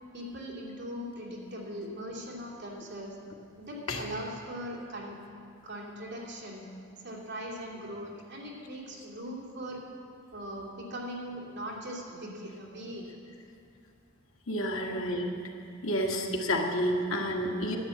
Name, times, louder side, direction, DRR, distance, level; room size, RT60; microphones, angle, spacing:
voice 1, 0.1-3.2 3.6-5.2 5.6-6.7 7.0-9.8 10.3-13.1 14.7-15.0, equal, 60° right, -4 dB, 2.9 m, -40 dB
voice 2, 14.5-15.3 15.8-17.8, equal, 80° left, 0 dB, 1.8 m, -29 dB
11.0 x 10.5 x 8.5 m, 2.4 s
head